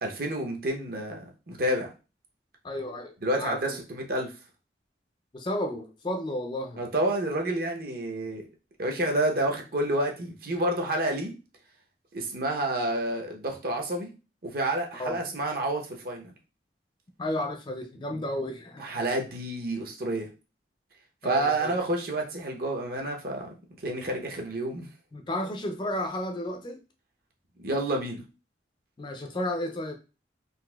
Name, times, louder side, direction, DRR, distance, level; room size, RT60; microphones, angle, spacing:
voice 1, 0.0-1.9 3.2-4.3 6.8-8.4 8.8-11.3 12.1-14.1 14.5-16.3 18.1-18.2 18.8-20.3 21.2-23.6 23.8-24.9 27.6-28.2, right 1 dB, 55° right, 2 dB, 0.7 m, -29 dB
voice 2, 2.6-3.8 5.3-6.8 15.0-15.2 17.2-19.0 21.2-21.8 25.1-26.8 29.0-29.9, left 1 dB, 25° left, 4 dB, 0.4 m, -32 dB
3.9 x 2.5 x 2.3 m, 0.31 s
head